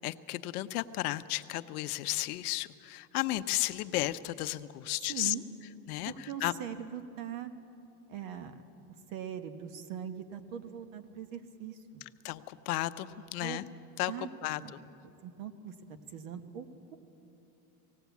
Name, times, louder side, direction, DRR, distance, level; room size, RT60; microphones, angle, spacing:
voice 1, 0.0-5.3 5.9-6.5 12.2-13.6 14.0-14.8, left 17 dB, 70° left, 12 dB, 0.8 m, -34 dB
voice 2, 5.0-5.4 6.1-7.5 8.1-8.5 9.1-12.0 13.4-13.6 14.1-14.3 14.6-14.7 15.2-16.7, right 9 dB, 55° right, 9 dB, 1.4 m, -41 dB
19.0 x 17.0 x 8.2 m, 2.8 s
supercardioid pair, 160°, 46 cm